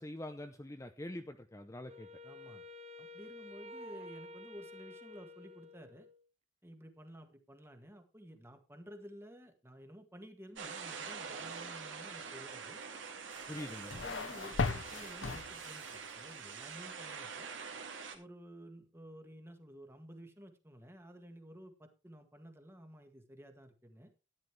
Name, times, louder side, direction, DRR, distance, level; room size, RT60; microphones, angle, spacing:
voice 1, 0.0-2.1 13.5-13.9, left 1 dB, 15° left, 6 dB, 0.7 m, -44 dB
Wind instrument woodwind instrument, 1.9-6.3, left 2 dB, 35° right, 0.8 m, -50 dB
voice 2, 2.2-2.6 3.0-6.1 6.6-12.8 13.5-13.6 13.9-17.5 18.1-24.1, equal, 15° right, 6 dB, 1.8 m, -53 dB
sound 1, 10.6-18.2, right 5 dB, 75° right, 2.5 m, -45 dB
sound 2, 13.3-16.0, left 4 dB, 80° left, 0.9 m, -38 dB
13.0 x 10.0 x 3.4 m, 0.30 s
head